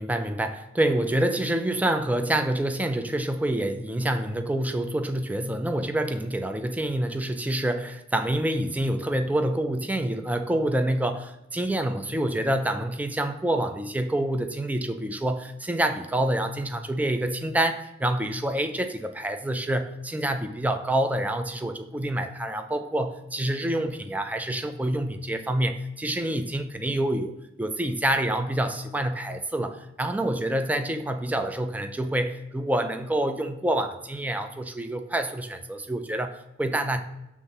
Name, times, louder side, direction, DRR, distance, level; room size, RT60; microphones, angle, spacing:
voice 1, 0.0-37.0, right 1 dB, 10° right, 7 dB, 0.3 m, -27 dB
6.8 x 3.6 x 5.8 m, 0.93 s
head